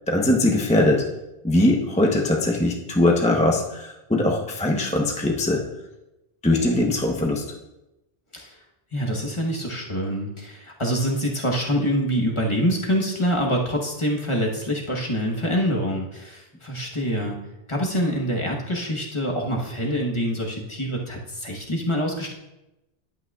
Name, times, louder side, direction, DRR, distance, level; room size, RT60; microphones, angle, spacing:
voice 1, 0.1-1.1 1.4-5.6 6.4-7.4, left 1 dB, 5° left, -1 dB, 0.8 m, -21 dB
voice 2, 8.9-17.4 17.7-22.3, equal, 30° left, -1 dB, 1.2 m, -25 dB
10.5 x 8.6 x 2.4 m, 0.95 s
omnidirectional pair, 1.1 m